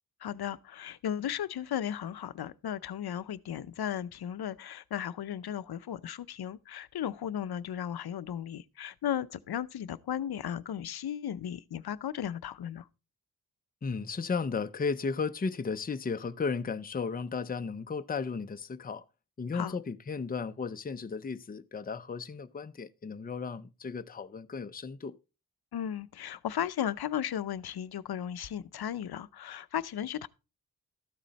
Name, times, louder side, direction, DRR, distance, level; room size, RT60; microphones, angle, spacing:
voice 1, 0.2-12.9 19.5-19.8 25.7-30.3, left 10 dB, 85° left, 0.6 m, -35 dB
voice 2, 13.8-19.0 19.4-25.2, left 5 dB, 25° left, 0.5 m, -34 dB
13.0 x 7.5 x 4.0 m
wide cardioid pair, 140°, 37 cm